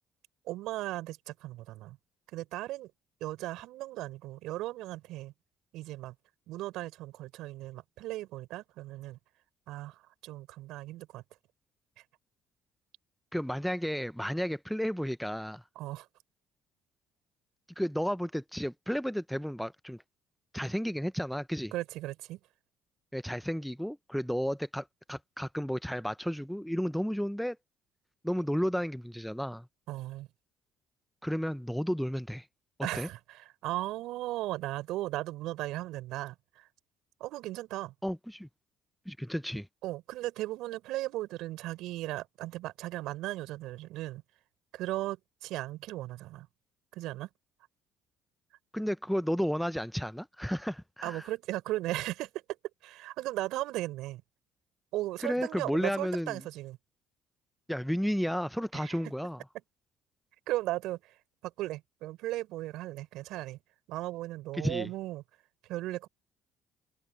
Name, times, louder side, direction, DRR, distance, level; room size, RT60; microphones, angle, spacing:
voice 1, 0.5-2.0 2.3-2.9 3.2-5.3 5.7-6.1 6.5-9.2 9.7-11.2 15.7-16.1 21.7-22.4 29.9-30.3 32.8-36.7 37.2-37.9 39.8-44.2 44.7-46.5 46.9-47.3 51.0-52.3 52.8-54.2 54.9-56.8 58.7-59.0 60.5-61.1 61.4-63.6 63.9-65.2 65.7-66.1, right 16 dB, 70° right, 4.8 m, -37 dB
voice 2, 13.3-15.6 17.8-20.0 20.5-21.7 23.1-27.6 28.2-29.7 31.2-32.5 32.9-33.1 38.0-38.5 39.1-39.7 48.7-51.3 55.2-56.4 57.7-59.4 64.5-64.9, equal, ahead, 1.0 m, -32 dB
hypercardioid pair, 55°, 0 cm